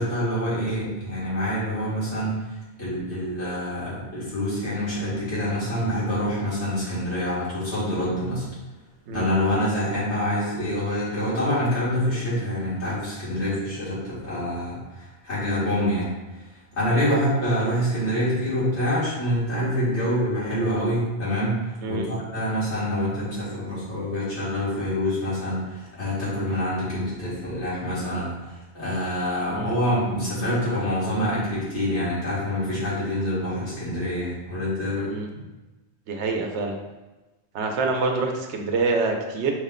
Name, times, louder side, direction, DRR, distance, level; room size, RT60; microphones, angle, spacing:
voice 1, 0.0-2.3 2.8-8.4 9.1-16.1 16.7-21.6 21.9-35.1, equal, 75° left, -9 dB, 2.0 m, -26 dB
voice 2, 36.1-36.8 37.5-39.5, right 3 dB, 80° right, 3 dB, 0.9 m, -26 dB
4.6 x 2.1 x 3.7 m, 1.1 s
omnidirectional pair, 1.2 m